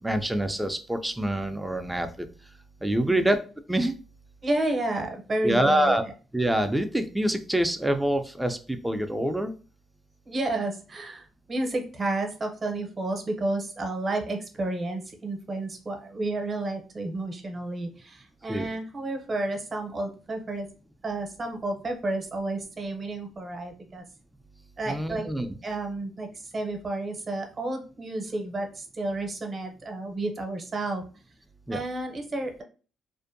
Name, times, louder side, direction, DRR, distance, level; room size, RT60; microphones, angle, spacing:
voice 1, 0.0-2.1 2.8-3.4 3.7-3.9 5.4-6.1 6.3-9.5 18.5-18.7 24.9-25.5 31.7-31.8, right 1 dB, 10° right, 8 dB, 0.4 m, -25 dB
voice 2, 4.4-6.0 10.3-20.7 21.0-24.0 24.8-25.3 25.6-31.0 31.7-32.6, right 2 dB, 35° right, 3 dB, 0.7 m, -31 dB
2.5 x 2.1 x 2.6 m, 0.35 s
cardioid pair, 90°, 0 cm